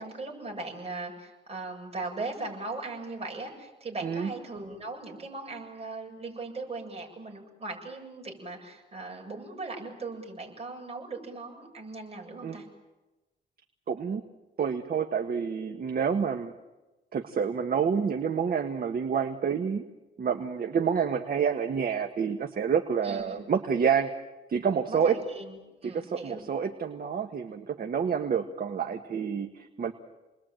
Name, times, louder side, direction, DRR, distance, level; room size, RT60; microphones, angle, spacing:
voice 1, 0.0-12.7 23.0-23.4 24.9-26.4, right 3 dB, 30° right, 1 dB, 7.3 m, -39 dB
voice 2, 13.9-14.2 14.6-16.5 17.1-19.8 20.2-24.1 24.5-25.1 25.8-29.9, right 6 dB, 50° right, 6 dB, 1.5 m, -28 dB
29.5 x 21.0 x 9.1 m, 1.1 s
cardioid pair, 125°, 19 cm